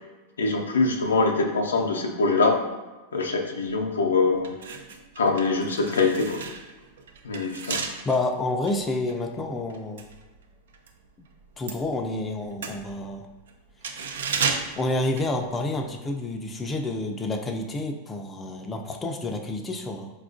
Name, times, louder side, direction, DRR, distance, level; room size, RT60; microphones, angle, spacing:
voice 1, 0.4-2.6 3.1-4.6 5.2-6.4 7.2-7.8, left 3 dB, 85° left, 2 dB, 0.5 m, -23 dB
sound 1, 3.8-3.9 4.4-11.0 11.3-15.9 16.2-16.4, right 5 dB, 75° right, 0.4 m, -34 dB
voice 2, 8.0-10.1 11.6-13.3 13.9-14.0 14.8-20.1, left 2 dB, 20° left, 3 dB, 0.4 m, -29 dB
4.1 x 2.3 x 2.5 m, 1.2 s
hypercardioid pair, 105°, 0 cm